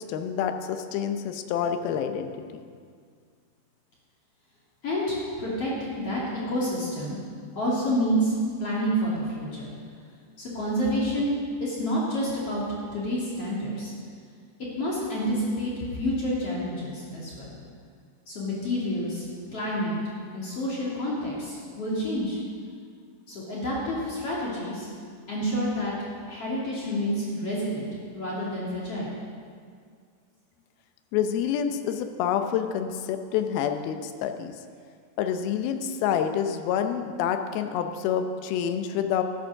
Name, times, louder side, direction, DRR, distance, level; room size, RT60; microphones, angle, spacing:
voice 1, 0.0-2.3 31.1-34.5 35.2-39.2, left 8 dB, 80° left, 7 dB, 2.6 m, -27 dB
voice 2, 4.8-5.7 6.0-7.2 7.6-9.7 10.4-12.6 12.9-13.9 14.7-17.5 18.3-19.3 19.5-20.0 20.3-22.4 23.3-24.9 25.3-25.9 26.3-29.1, equal, 45° left, -6 dB, 3.1 m, -28 dB
13.0 x 10.5 x 6.4 m, 2.1 s
omnidirectional pair, 4.4 m